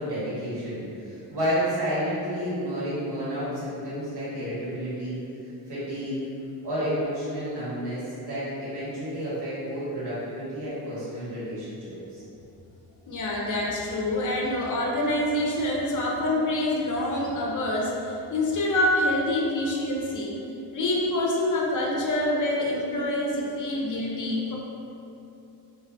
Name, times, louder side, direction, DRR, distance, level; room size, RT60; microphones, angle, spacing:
voice 1, 0.0-5.2 5.7-6.2 6.6-12.2, equal, 65° right, -10 dB, 1.5 m, -31 dB
voice 2, 13.1-20.3 20.7-24.5, left 1 dB, 45° left, -2 dB, 0.6 m, -26 dB
2.6 x 2.2 x 3.3 m, 2.7 s
cardioid pair, 70°, 42 cm